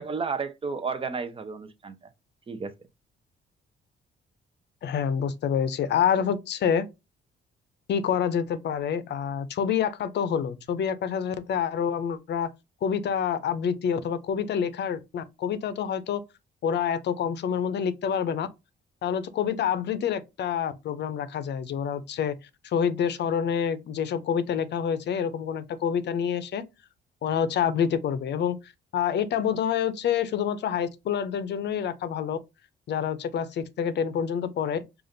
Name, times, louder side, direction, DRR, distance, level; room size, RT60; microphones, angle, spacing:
voice 1, 0.0-2.0 2.5-2.7, right 5 dB, 25° right, 0.6 m, -32 dB
voice 2, 4.8-6.9 7.9-12.5 12.8-16.2 16.6-18.5 19.0-22.4 22.6-26.6 27.2-28.6 28.9-32.4 32.9-34.8, left 8 dB, 60° left, 0.6 m, -27 dB
4.9 x 2.5 x 2.6 m
cardioid pair, 90°, 20 cm